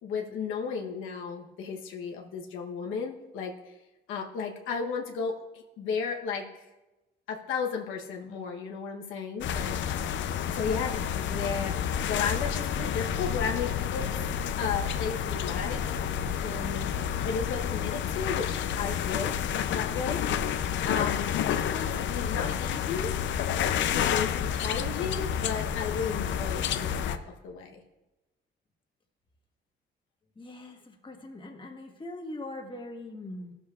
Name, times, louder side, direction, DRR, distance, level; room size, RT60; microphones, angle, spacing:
voice 1, 0.0-3.8 4.1-6.7 7.3-9.8 10.5-14.1 14.6-16.0 16.4-16.9 17.2-19.4 19.7-20.2 20.8-23.1 23.9-27.8, left 5 dB, 90° left, 1 dB, 1.0 m, -34 dB
sound 1, 9.4-27.2, left 9 dB, 70° left, 0.5 m, -30 dB
voice 2, 30.3-33.5, left 1 dB, 25° left, 2 dB, 1.4 m, -41 dB
14.5 x 7.0 x 2.4 m, 1.0 s
cardioid pair, 90°, 20 cm